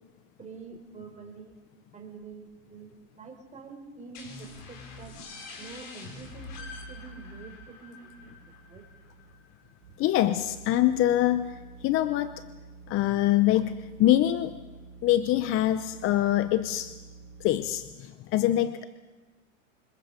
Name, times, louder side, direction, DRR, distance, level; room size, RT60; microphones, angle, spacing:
voice 1, 0.4-1.5 1.9-5.2 5.6-8.3 8.7-8.8, right 4 dB, 15° right, 3 dB, 4.4 m, -46 dB
sound 1, 4.1-9.6, left 4 dB, 50° left, 5.4 m, -46 dB
sound 2, 6.4-7.7 8.0-17.8, right 4 dB, 75° right, 3.3 m, -49 dB
voice 2, 10.0-12.4 12.9-14.5 15.0-16.9 17.4-18.9, left 13 dB, 30° left, 12 dB, 0.8 m, -24 dB
26.5 x 21.5 x 5.2 m, 1.3 s
hypercardioid pair, 125°, 41 cm